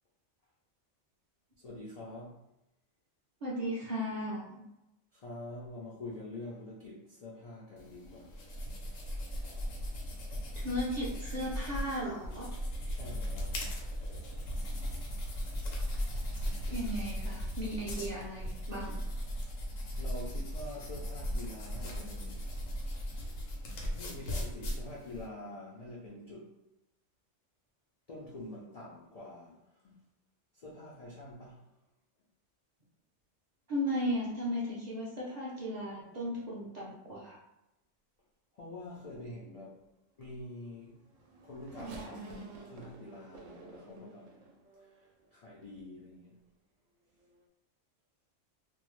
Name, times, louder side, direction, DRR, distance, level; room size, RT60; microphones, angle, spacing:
voice 1, 1.6-2.4 5.1-8.4 12.9-13.6 20.0-22.4 23.9-26.5 28.1-30.0 30.5-31.7 38.6-39.8 40.2-40.9 41.4-44.4 45.3-46.4, left 1 dB, 70° left, -5 dB, 0.3 m, -46 dB
voice 2, 3.4-4.6 10.5-12.5 12.8-13.0 16.7-19.0 33.7-37.4, equal, 45° right, -5 dB, 0.6 m, -36 dB
sound 1, 7.8-25.3, equal, 90° left, 1.1 m, -37 dB
Race car auto racing / Accelerating revving vroom, 40.7-45.3 46.0-46.1 47.2-47.4, right 4 dB, 85° right, 0.9 m, -49 dB
2.6 x 2.0 x 3.0 m, 0.91 s
omnidirectional pair, 1.3 m